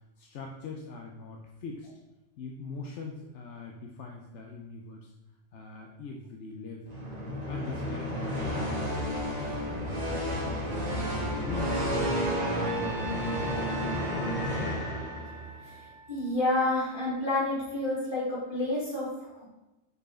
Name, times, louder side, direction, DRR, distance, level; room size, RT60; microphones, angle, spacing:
voice 1, 0.2-1.9 2.4-5.1 5.5-7.0 7.5-10.9 11.2-13.9, left 4 dB, 80° left, 0 dB, 1.0 m, -42 dB
sound 1, 6.9-15.5, equal, 35° right, 1.5 m, -31 dB
Trumpet, 12.6-16.8, right 1 dB, 70° right, 1.0 m, -43 dB
voice 2, 16.1-19.5, left 2 dB, 45° left, -5 dB, 2.0 m, -29 dB
5.5 x 4.6 x 4.3 m, 1.0 s
omnidirectional pair, 1.2 m